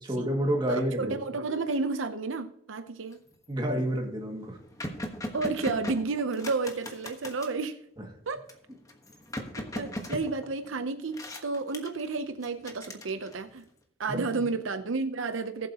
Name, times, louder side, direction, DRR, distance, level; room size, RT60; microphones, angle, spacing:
voice 1, 0.0-1.2 3.5-4.6 8.0-8.1 14.1-14.3, right 1 dB, 20° right, 2.1 m, -29 dB
voice 2, 0.7-3.2 5.3-7.8 8.3-8.4 9.6-13.6 14.0-15.7, right 3 dB, 75° right, 0.7 m, -31 dB
sound 1, 3.1-3.4 3.9-4.0 4.2-7.6 8.5-10.8 11.1-12.1 12.4-13.6, left 1 dB, 15° left, 1.3 m, -39 dB
19.0 x 7.7 x 2.9 m
head